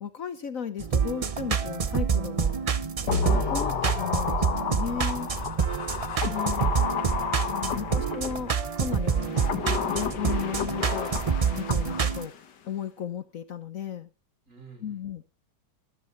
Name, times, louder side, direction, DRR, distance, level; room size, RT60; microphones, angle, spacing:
voice 1, 0.0-2.6 3.2-5.3 6.3-6.7 7.5-9.4 9.9-11.1 11.5-12.3 12.7-14.1 14.8-15.2, left 8 dB, 55° left, 12 dB, 1.2 m, -35 dB
sound 1, 0.8-12.3, right 6 dB, 65° right, 0.3 m, -27 dB
sound 2, 3.1-8.5 9.2-12.4 12.7-12.8, left 7 dB, 80° left, 2.0 m, -31 dB
voice 2, 5.7-6.7 14.5-15.0, right 2 dB, 50° right, 3 dB, 6.3 m, -52 dB
13.5 x 13.5 x 4.4 m, 0.33 s
omnidirectional pair, 1.8 m